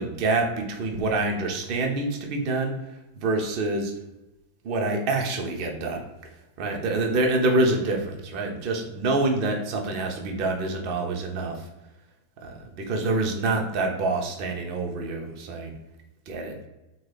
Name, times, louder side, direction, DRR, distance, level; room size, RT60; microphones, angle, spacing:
voice 1, 0.0-3.9 4.6-6.0 6.6-11.7 12.4-15.7 16.3-16.7, right 2 dB, 45° right, 2 dB, 0.6 m, -26 dB
3.2 x 2.3 x 3.2 m, 1.0 s
figure-of-eight pair, 90°, 0 cm